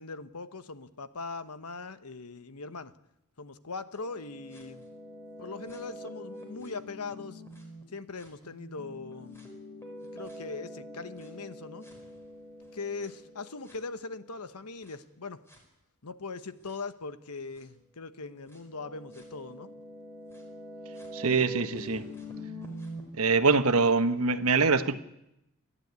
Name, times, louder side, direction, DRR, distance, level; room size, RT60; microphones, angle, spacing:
voice 1, 0.0-2.9 3.4-4.9 5.4-7.4 7.9-9.5 10.1-11.9 12.7-15.4 16.0-19.7, left 4 dB, 90° left, 1.1 m, -40 dB
sound 1, 4.0-7.8 8.2-14.3 14.8-14.9 15.5-15.6 16.6-16.7 17.6-17.7 18.5-23.0, left 1 dB, 10° left, 4.9 m, -45 dB
voice 2, 21.1-22.0 23.2-24.9, right 4 dB, 70° right, 1.2 m, -24 dB
29.5 x 11.5 x 9.5 m
head